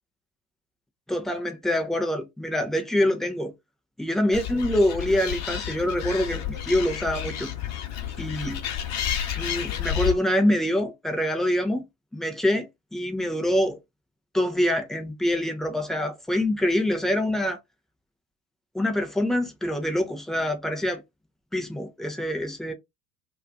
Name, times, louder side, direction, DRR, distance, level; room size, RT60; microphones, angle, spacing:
voice 1, 1.1-3.5 4.0-7.5 8.2-8.6 9.4-11.8 12.1-13.8 14.3-17.6 18.7-21.0 21.5-22.7, left 1 dB, ahead, 0.4 m, -25 dB
Animal, 4.3-10.1, left 10 dB, 40° left, 0.9 m, -31 dB
2.4 x 2.4 x 2.2 m
figure-of-eight pair, 75°, 42 cm